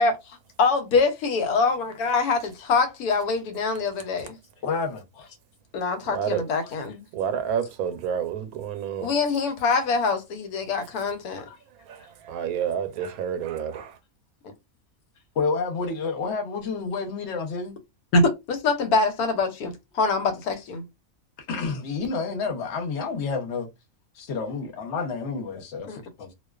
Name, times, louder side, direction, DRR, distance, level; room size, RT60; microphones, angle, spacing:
voice 1, 0.0-4.4 5.7-7.0 9.0-11.4 14.4-14.5 18.1-20.8 25.9-26.0, left 3 dB, 85° left, 1.1 m, -24 dB
voice 2, 4.6-5.4 6.6-6.7 11.4-11.6 15.4-17.7 21.5-23.7 24.2-26.3, left 4 dB, 55° left, 0.9 m, -29 dB
voice 3, 6.1-6.4 7.1-9.1 11.9-13.9, right 8 dB, 80° right, 1.0 m, -29 dB
2.4 x 2.3 x 2.3 m
omnidirectional pair, 1.5 m